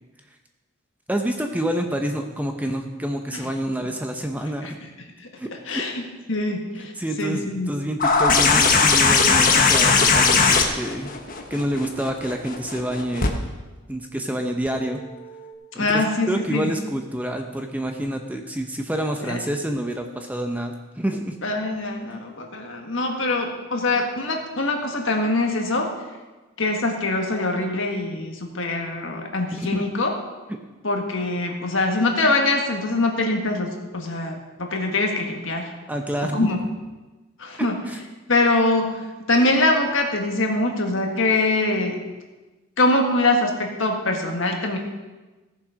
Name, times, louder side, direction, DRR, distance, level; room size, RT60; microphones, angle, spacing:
voice 1, 1.1-4.8 5.4-5.8 7.0-11.1 11.5-13.3 13.9-15.0 15.7-21.4 29.6-29.8 35.9-36.5 37.9-38.0, right 1 dB, 5° right, 4 dB, 0.6 m, -28 dB
voice 2, 5.7-6.9 7.2-7.7 15.8-16.7 19.2-19.4 21.4-25.9 26.6-30.1 30.8-35.7 36.3-36.6 37.4-37.8 38.3-38.9 39.3-42.0 42.8-44.8, left 2 dB, 60° left, 2 dB, 1.7 m, -23 dB
sound 1, 8.0-13.3 14.7-14.8, left 4 dB, 40° left, 1.1 m, -18 dB
15.5 x 7.2 x 5.1 m, 1.2 s
head